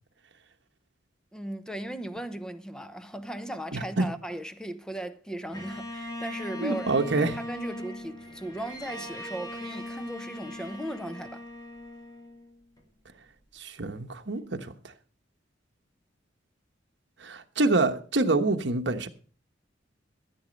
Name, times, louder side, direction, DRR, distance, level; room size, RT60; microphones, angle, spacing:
voice 1, 1.3-11.4, right 1 dB, 5° left, 0.9 m, -37 dB
voice 2, 3.7-4.1 6.6-7.4 13.6-14.7 17.2-19.1, right 2 dB, 65° right, 1.2 m, -26 dB
Bowed string instrument, 5.5-12.8, left 1 dB, 20° left, 2.7 m, -39 dB
14.0 x 7.8 x 5.2 m
head